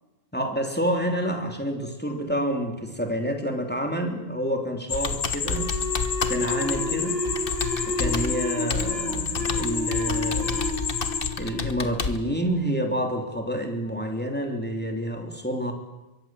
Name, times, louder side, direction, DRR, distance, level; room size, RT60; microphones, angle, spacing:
voice 1, 0.3-5.7 6.2-7.2 7.9-10.7 11.4-15.7, equal, 10° left, 3 dB, 3.3 m, -28 dB
sound 1, 4.9-11.3, left 7 dB, 80° left, 1.5 m, -32 dB
Computer keyboard, 4.9-12.2, left 4 dB, 50° left, 1.5 m, -31 dB
sound 2, 5.5-12.7, left 2 dB, 55° right, 3.4 m, -31 dB
26.0 x 23.0 x 7.7 m, 1.1 s
omnidirectional pair, 1.2 m